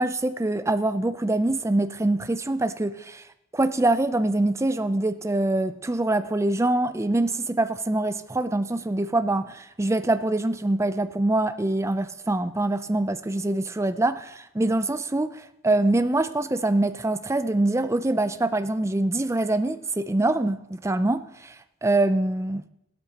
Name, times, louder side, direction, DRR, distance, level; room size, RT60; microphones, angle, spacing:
voice 1, 0.0-3.2 3.5-21.5 21.8-22.6, right 2 dB, 15° right, 0.5 m, -24 dB
16.5 x 12.5 x 2.9 m
head